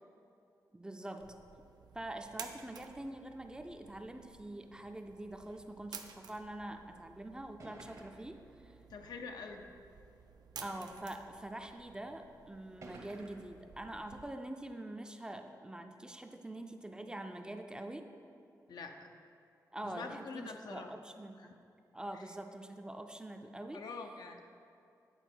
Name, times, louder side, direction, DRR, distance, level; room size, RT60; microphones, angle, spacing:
voice 1, 0.7-1.4 1.9-8.7 10.6-18.1 19.7-21.4 21.9-23.8, right 1 dB, 10° right, 5 dB, 0.4 m, -45 dB
sound 1, 1.2-14.3, right 6 dB, 75° right, 0.4 m, -54 dB
sound 2, 7.6-8.4 9.3-9.4 10.6-11.1 12.0-12.1 12.8-13.6, right 2 dB, 50° right, 0.8 m, -53 dB
voice 2, 8.9-9.6 18.7-19.1 19.8-20.9 22.1-22.2 23.7-24.4, left 4 dB, 75° left, 4 dB, 0.5 m, -45 dB
8.1 x 4.3 x 4.4 m, 2.5 s
wide cardioid pair, 95°, 7 cm